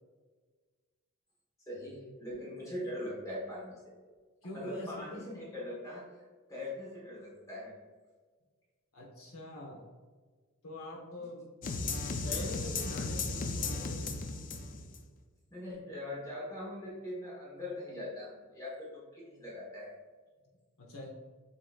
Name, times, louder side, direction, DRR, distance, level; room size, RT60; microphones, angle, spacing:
voice 1, 1.7-3.9 4.5-6.0 6.5-7.7 12.3-12.5 15.5-19.9, left 1 dB, 15° left, -5 dB, 1.1 m, -41 dB
voice 2, 4.4-5.2 8.9-9.8 10.6-11.4 11.8-14.2 20.8-21.1, left 1 dB, 65° left, -3 dB, 0.8 m, -44 dB
sound 1, 11.6-15.0, left 3 dB, 35° left, 0.4 m, -35 dB
7.5 x 2.8 x 2.4 m, 1.4 s
head